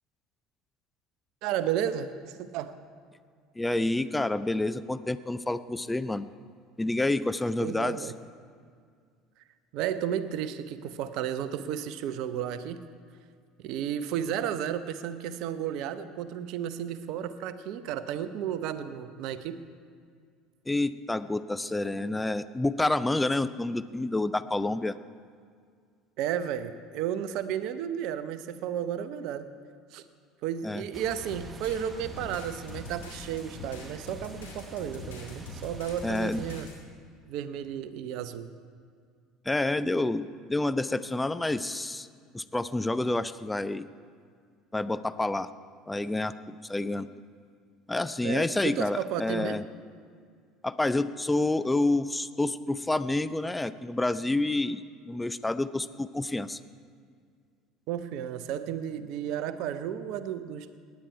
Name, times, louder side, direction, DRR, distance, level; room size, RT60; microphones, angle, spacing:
voice 1, 1.4-2.7 7.6-8.2 9.7-12.8 13.6-19.6 26.2-29.5 29.9-30.0 30.4-36.7 37.3-38.5 48.2-49.6 57.9-60.7, right 9 dB, 60° right, 12 dB, 0.7 m, -33 dB
voice 2, 3.6-6.3 6.8-8.1 20.7-25.0 30.6-30.8 36.0-36.4 39.5-42.1 42.3-43.9 44.7-45.5 45.9-47.1 47.9-49.6 50.6-56.6, left 2 dB, 10° left, 14 dB, 0.5 m, -28 dB
sound 1, 30.9-36.6, right 1 dB, 20° right, 1.3 m, -46 dB
sound 2, 31.3-36.7, left 3 dB, 85° left, 2.5 m, -44 dB
17.5 x 10.5 x 4.6 m, 2.1 s
hypercardioid pair, 70°, 0 cm